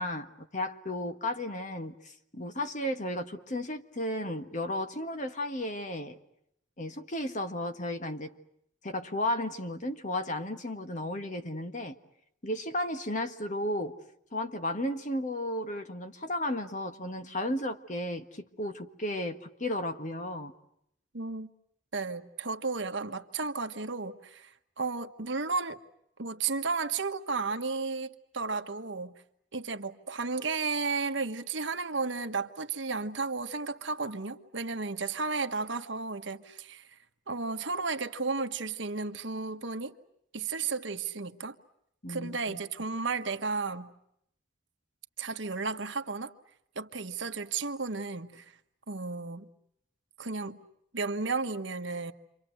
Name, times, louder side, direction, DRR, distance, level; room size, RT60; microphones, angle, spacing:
voice 1, 0.0-6.2 6.8-8.3 8.8-11.9 12.4-13.9 14.3-20.5 42.0-42.6, left 1 dB, 40° left, 1.7 m, -34 dB
voice 2, 21.1-21.5 21.9-25.8 26.2-29.2 29.5-36.9 37.3-40.0 40.3-41.5 42.1-43.9 45.2-46.3 46.7-48.4 48.9-49.5 50.2-50.6 50.9-52.1, right 4 dB, 65° right, 1.4 m, -33 dB
29.0 x 25.0 x 7.9 m
head